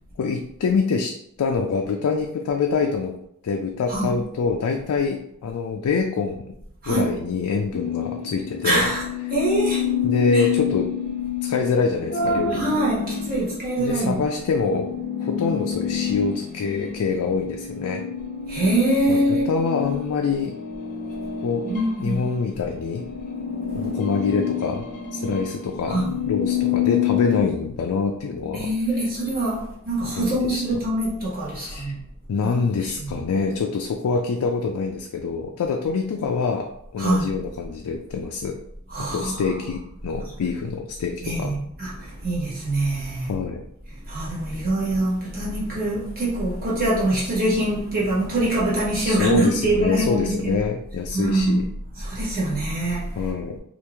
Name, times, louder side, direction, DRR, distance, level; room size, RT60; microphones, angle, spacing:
voice 1, 0.2-3.2 3.4-6.5 6.9-8.9 10.0-10.9 11.4-12.8 13.8-14.9 15.2-18.0 19.1-20.5 21.4-21.7 22.0-23.0 23.7-24.9 25.1-28.7 30.1-30.8 31.6-32.0 32.3-38.6 39.0-41.5 43.2-43.6 49.0-51.7 53.2-53.6, left 5 dB, 90° left, 3 dB, 0.4 m, -25 dB
sound 1, 7.7-22.3 22.7-27.4, left 9 dB, 35° left, 0.6 m, -28 dB
voice 2, 8.6-9.0 9.3-9.9 10.3-10.5 12.1-14.2 18.5-19.5 21.6-22.3 25.9-26.1 28.5-32.0 32.4-32.5 32.8-33.2 37.0-37.3 38.9-39.6 41.2-43.3 44.0-50.6 51.1-51.7 51.9-53.3, right 1 dB, 45° right, -6 dB, 1.3 m, -24 dB
3.0 x 2.4 x 3.4 m, 0.74 s
head